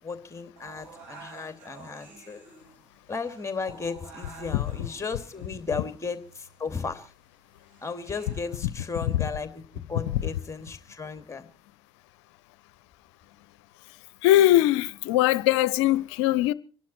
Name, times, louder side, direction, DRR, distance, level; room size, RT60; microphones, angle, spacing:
voice 1, 0.0-2.4 3.1-7.1 7.8-9.6 9.9-11.5, left 4 dB, 20° left, 2.7 m, -35 dB
sound 1, 0.6-8.6, right 4 dB, 65° right, 6.9 m, -50 dB
voice 2, 14.2-16.5, left 14 dB, 70° left, 0.7 m, -21 dB
26.5 x 11.5 x 4.3 m
figure-of-eight pair, 55°, 15 cm